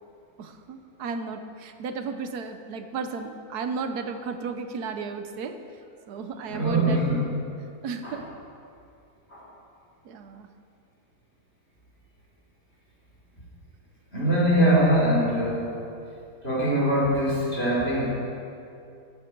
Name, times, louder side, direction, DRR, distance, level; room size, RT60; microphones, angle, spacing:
voice 1, 0.4-5.5 6.1-7.0 7.8-8.2 10.0-10.5 14.6-14.8, right 5 dB, 90° right, 7 dB, 1.4 m, -34 dB
voice 2, 6.5-7.2 8.0-8.2 9.3-9.4 14.1-15.7 16.4-18.1, right 1 dB, 40° left, -6 dB, 3.7 m, -22 dB
14.0 x 11.0 x 4.6 m, 2.5 s
omnidirectional pair, 1.6 m